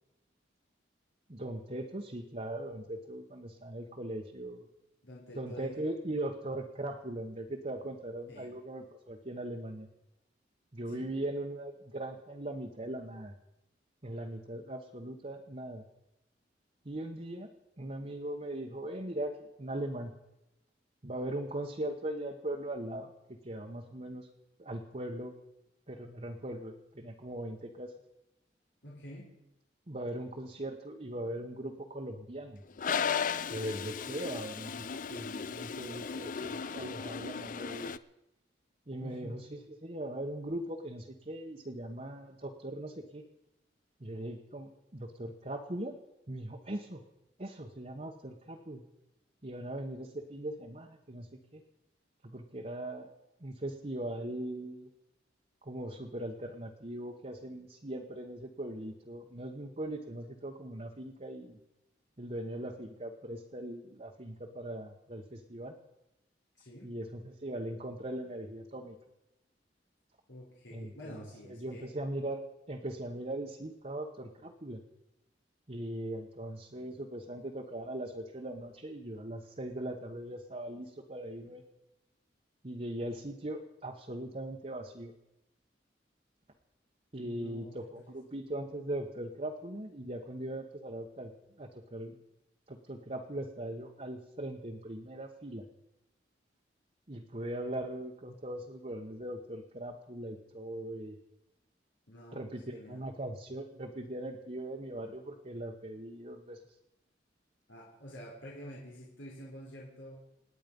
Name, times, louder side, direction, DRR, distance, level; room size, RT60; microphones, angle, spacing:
voice 1, 1.3-4.7 5.3-9.9 10.7-13.3 14.0-15.8 16.8-17.5 17.8-20.1 21.0-24.3 24.6-25.4 25.9-27.9 29.9-32.6 33.5-37.9 38.9-43.2 44.0-46.0 46.3-47.0 47.4-48.8 49.4-51.6 52.2-53.1 53.4-54.9 55.6-61.6 62.2-65.7 66.8-69.0 70.7-71.2 71.5-72.4 72.7-74.8 75.7-81.6 82.6-85.1 87.1-91.3 91.6-92.2 92.7-95.6 97.1-101.2 102.3-106.6, right 1 dB, 35° right, 1 dB, 1.2 m, -40 dB
voice 2, 5.0-5.9 8.3-8.5 10.9-11.1 28.8-29.3 39.0-39.3 66.6-66.9 70.3-71.9 87.2-87.8 102.1-103.1 107.7-110.2, equal, 90° left, -5 dB, 3.9 m, -48 dB
Toilet flush, 32.8-38.0, left 6 dB, 45° left, 0.5 m, -36 dB
28.0 x 9.5 x 5.4 m, 0.91 s
head